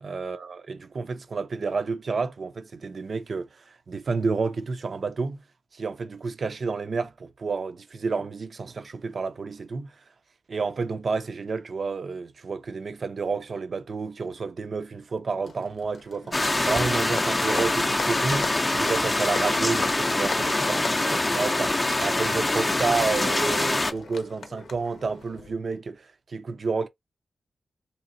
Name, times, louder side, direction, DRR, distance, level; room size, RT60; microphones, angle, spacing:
voice 1, 0.0-5.4 5.7-9.9 10.5-21.7 22.0-26.9, right 4 dB, 60° right, 0.4 m, -30 dB
Applause, 15.4-25.5, left 4 dB, 90° left, 0.6 m, -38 dB
sound 1, 16.3-23.9, left 2 dB, 25° left, 0.5 m, -24 dB
3.4 x 2.8 x 2.5 m
wide cardioid pair, 85°, 0 cm